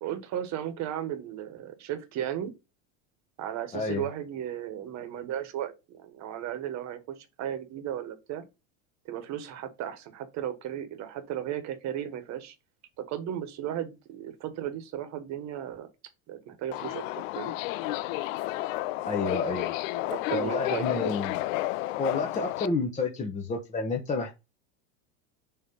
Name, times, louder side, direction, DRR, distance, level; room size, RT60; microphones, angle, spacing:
voice 1, 0.0-2.5 3.4-8.4 9.0-12.5 13.0-15.9 16.3-17.5 20.1-21.2, right 10 dB, 45° right, 1.4 m, -35 dB
voice 2, 3.7-4.0 19.0-19.7 20.3-21.4 22.0-24.3, left 3 dB, 20° left, 1.0 m, -30 dB
Subway metro underground, 16.7-22.7, left 17 dB, 85° left, 0.5 m, -31 dB
6.8 x 3.2 x 5.4 m
supercardioid pair, 140°, 38 cm